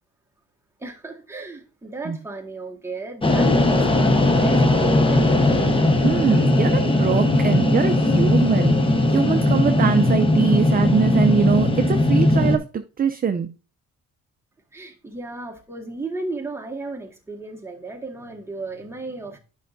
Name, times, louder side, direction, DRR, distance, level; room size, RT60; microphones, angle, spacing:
voice 1, 0.8-5.7 14.7-19.4, right 3 dB, 10° right, 1.7 m, -34 dB
sound 1, 3.2-12.6, left 2 dB, 15° left, 0.8 m, -18 dB
voice 2, 6.0-13.5, right 6 dB, 30° right, 0.5 m, -23 dB
9.1 x 5.5 x 2.6 m
cardioid pair, 90°, 30 cm